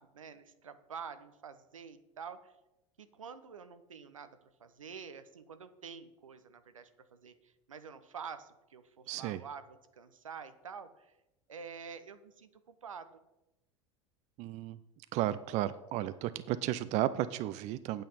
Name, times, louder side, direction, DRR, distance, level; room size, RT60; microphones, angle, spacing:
voice 1, 0.0-2.5 3.0-11.2 11.5-13.2, right 6 dB, 80° right, 11 dB, 0.8 m, -48 dB
voice 2, 9.1-9.4 14.4-14.8 15.1-18.0, right 13 dB, 45° right, 15 dB, 0.5 m, -33 dB
8.8 x 8.5 x 5.5 m, 0.93 s
figure-of-eight pair, 80°, 17 cm